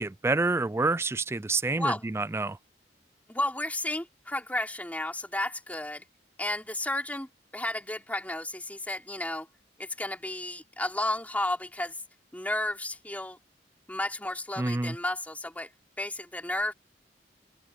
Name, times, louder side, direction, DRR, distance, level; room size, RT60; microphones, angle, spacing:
voice 1, 0.0-2.6 14.6-15.0, right 3 dB, 15° right, 0.3 m, -28 dB
voice 2, 1.7-2.1 3.3-6.1 6.4-9.5 9.8-12.0 12.3-13.4 13.9-15.7 16.0-16.7, left 1 dB, 10° left, 3.6 m, -32 dB
open air
head